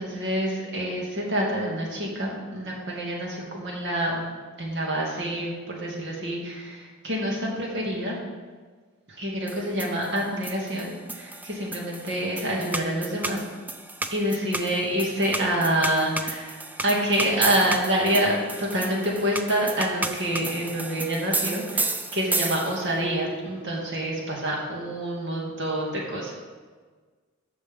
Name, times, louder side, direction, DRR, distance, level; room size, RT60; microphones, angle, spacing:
voice 1, 0.0-4.3 4.6-8.2 9.1-13.4 14.1-26.3, right 1 dB, 55° right, -3 dB, 2.4 m, -27 dB
sound 1, 9.5-23.0, right 2 dB, 10° right, 0.4 m, -33 dB
15.0 x 6.2 x 3.8 m, 1.5 s
head